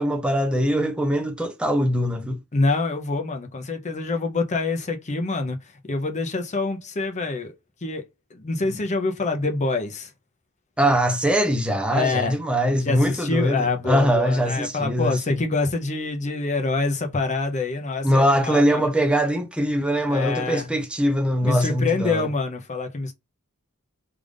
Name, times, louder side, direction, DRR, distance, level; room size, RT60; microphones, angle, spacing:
voice 1, 0.0-2.4 10.8-15.4 18.0-22.3, equal, 5° right, 0.6 m, -22 dB
voice 2, 2.5-5.6 5.9-7.5 7.8-8.0 8.3-10.1 11.9-12.4 12.8-18.9 20.1-20.7 21.4-23.1, left 3 dB, 35° left, 0.7 m, -26 dB
3.4 x 2.5 x 3.3 m
head